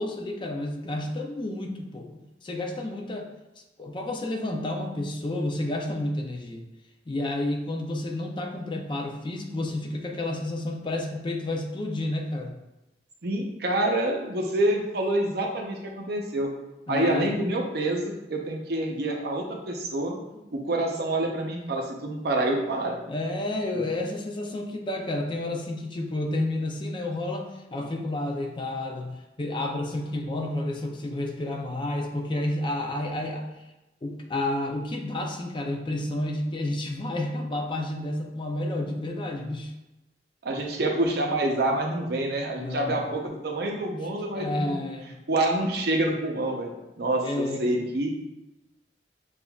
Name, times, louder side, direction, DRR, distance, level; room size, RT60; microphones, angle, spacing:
voice 1, 0.0-2.1 2.4-3.3 3.6-6.6 7.1-12.5 16.9-17.3 20.3-20.4 23.1-33.7 34.0-39.7 42.6-43.0 44.3-45.1 47.2-47.8, left 1 dB, 30° left, 2 dB, 0.5 m, -30 dB
voice 2, 13.2-16.5 16.9-20.1 20.5-23.0 24.0-24.1 40.4-44.8 45.3-48.1, right 1 dB, 60° right, 1 dB, 0.7 m, -27 dB
6.9 x 2.5 x 2.3 m, 0.98 s
head